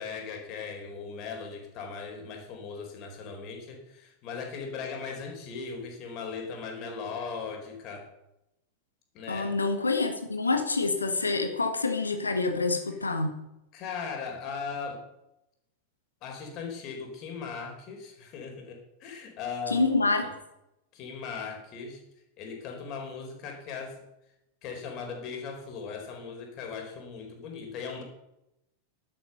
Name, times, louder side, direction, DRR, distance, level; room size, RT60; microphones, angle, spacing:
voice 1, 0.0-8.0 9.1-9.6 13.7-15.1 16.2-19.9 20.9-22.0 22.4-24.0 24.6-28.0, left 5 dB, 40° left, 2 dB, 4.3 m, -38 dB
voice 2, 9.3-13.4 19.7-20.3, left 3 dB, 80° left, 6 dB, 1.6 m, -27 dB
11.5 x 10.0 x 6.6 m, 0.87 s
figure-of-eight pair, 90°, 0 cm